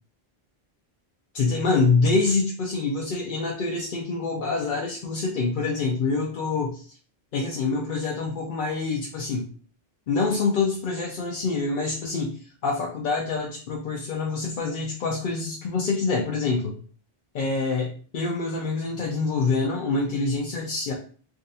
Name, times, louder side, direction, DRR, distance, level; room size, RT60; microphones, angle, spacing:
voice 1, 1.3-6.8 7.3-9.5 10.1-12.3 12.6-16.7 17.3-20.9, left 4 dB, 60° left, -1 dB, 0.7 m, -26 dB
3.5 x 2.4 x 2.6 m, 0.42 s
omnidirectional pair, 1.1 m